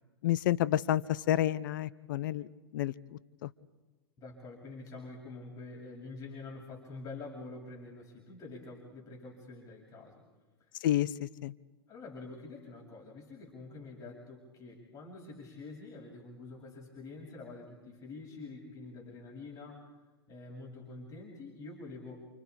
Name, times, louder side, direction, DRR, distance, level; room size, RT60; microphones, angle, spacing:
voice 1, 0.2-3.5 10.8-11.5, left 13 dB, 55° left, 18 dB, 1.0 m, -30 dB
voice 2, 4.2-10.2 10.6-10.8 11.9-19.9 20.3-22.3, left 3 dB, 30° left, -2 dB, 7.7 m, -47 dB
29.5 x 29.5 x 4.9 m, 1.2 s
figure-of-eight pair, 100°, 12 cm